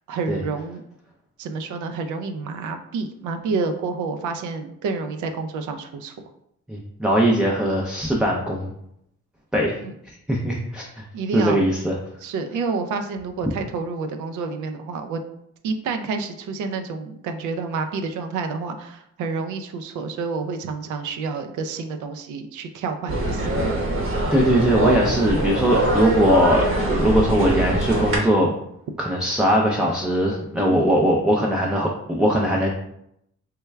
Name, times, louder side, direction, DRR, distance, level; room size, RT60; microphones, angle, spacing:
voice 1, 0.1-0.8 1.4-6.3 9.8-10.0 11.1-11.7 12.2-15.2 15.6-23.7 30.6-30.8, right 4 dB, 75° right, 7 dB, 0.5 m, -29 dB
voice 2, 6.7-8.7 9.5-9.8 10.3-10.9 11.3-12.0 24.3-28.5 29.0-32.7, equal, 5° right, -2 dB, 0.4 m, -20 dB
sound 1, 23.1-28.2, right 1 dB, 45° right, 0.9 m, -23 dB
3.3 x 2.2 x 3.2 m, 0.76 s
cardioid pair, 90°, 30 cm